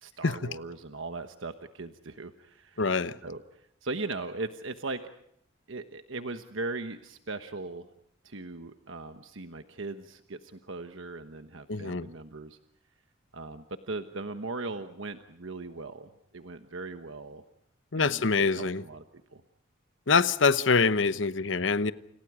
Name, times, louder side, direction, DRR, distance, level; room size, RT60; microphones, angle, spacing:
voice 1, 0.0-2.8 3.2-5.0 5.7-7.9 8.2-12.6 13.3-17.4 18.0-19.0 19.3-19.4, right 3 dB, 75° right, 8 dB, 1.2 m, -39 dB
voice 2, 2.8-3.2 11.7-12.1 17.9-18.8 20.1-21.9, left 4 dB, 70° left, 14 dB, 1.0 m, -25 dB
29.5 x 28.5 x 4.9 m, 0.70 s
head